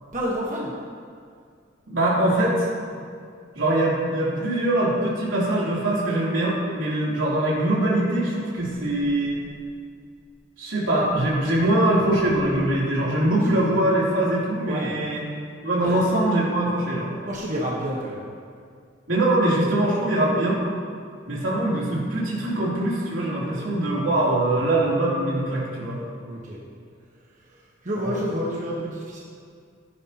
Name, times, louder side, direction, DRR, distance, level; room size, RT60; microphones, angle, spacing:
voice 1, 0.1-0.7 13.3-13.7 14.7-14.9 15.8-16.0 17.3-18.2 26.3-26.6 27.8-29.2, equal, 40° right, -4 dB, 1.3 m, -29 dB
voice 2, 1.9-2.7 3.5-9.4 10.6-15.2 15.6-17.1 19.1-20.6 21.3-26.0 28.0-28.2, right 1 dB, 85° right, -6 dB, 3.1 m, -22 dB
15.0 x 9.9 x 2.9 m, 2.2 s
head